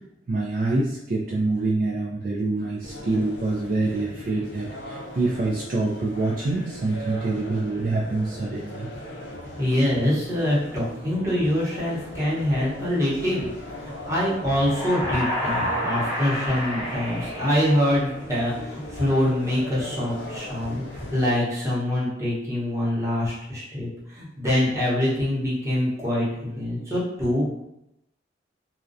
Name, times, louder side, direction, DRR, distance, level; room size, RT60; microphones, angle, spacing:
voice 1, 0.3-8.9, right 2 dB, 50° right, -4 dB, 0.3 m, -26 dB
sound 1, 2.8-21.4, left 1 dB, 80° left, 0.5 m, -39 dB
voice 2, 9.6-13.5 13.8-27.4, left 1 dB, 15° right, -8 dB, 0.8 m, -25 dB
sound 2, 14.6-18.4, equal, 25° left, 0.6 m, -30 dB
2.4 x 2.1 x 2.5 m, 0.83 s
head